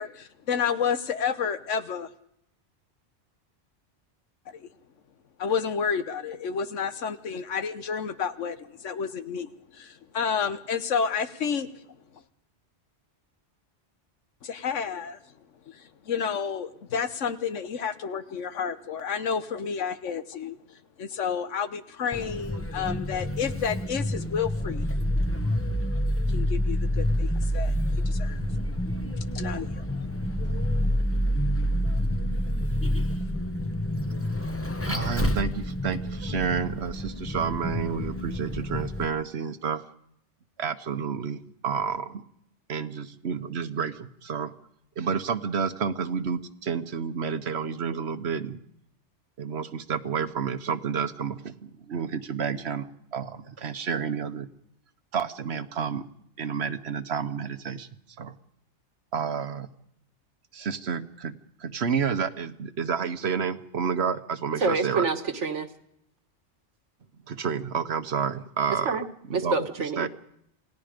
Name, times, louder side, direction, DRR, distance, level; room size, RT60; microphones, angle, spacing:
voice 1, 0.0-2.1 4.5-4.6 5.4-8.6 8.8-9.5 9.8-11.7 14.4-15.2 15.7-20.6 21.0-24.9 26.3-27.7 28.1-28.5 28.8-31.0, left 6 dB, 90° left, 11 dB, 1.4 m, -30 dB
Vehicle, 22.1-39.0, equal, 10° left, 1.0 m, -28 dB
voice 2, 34.8-39.8 40.6-42.2 42.7-44.5 45.0-48.6 49.4-54.5 55.1-56.0 56.4-57.9 58.2-58.3 59.1-59.7 60.5-61.3 61.6-65.1 67.3-69.0 69.3-69.5 70.0-70.1, right 6 dB, 65° right, 11 dB, 1.3 m, -30 dB
voice 3, 64.6-65.7 68.9-69.0 69.3-70.1, right 4 dB, 80° right, 6 dB, 1.8 m, -27 dB
28.0 x 18.5 x 5.2 m, 0.74 s
omnidirectional pair, 1.2 m